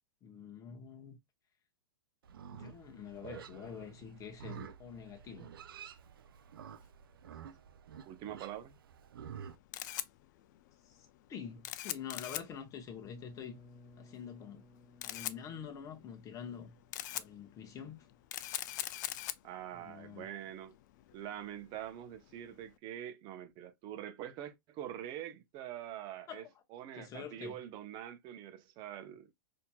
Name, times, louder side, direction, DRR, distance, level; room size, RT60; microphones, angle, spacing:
voice 1, 0.2-1.2 2.4-5.5 10.8-13.6 14.0-14.6 15.0-16.7 17.1-18.1 19.8-20.3 26.3-26.5 26.9-27.6, left 7 dB, 30° left, 1.0 m, -47 dB
Livestock farm animals working animals, 2.2-9.6, right 8 dB, 80° right, 0.5 m, -50 dB
voice 2, 8.1-8.7 19.4-20.7 21.1-26.4 26.7-29.3, right 11 dB, 40° right, 0.8 m, -44 dB
Camera, 9.3-22.7, left 14 dB, 55° left, 0.4 m, -44 dB
sound 1, 13.0-18.8, left 2 dB, 10° left, 1.2 m, -60 dB
4.3 x 2.8 x 2.2 m
hypercardioid pair, 115°, 12 cm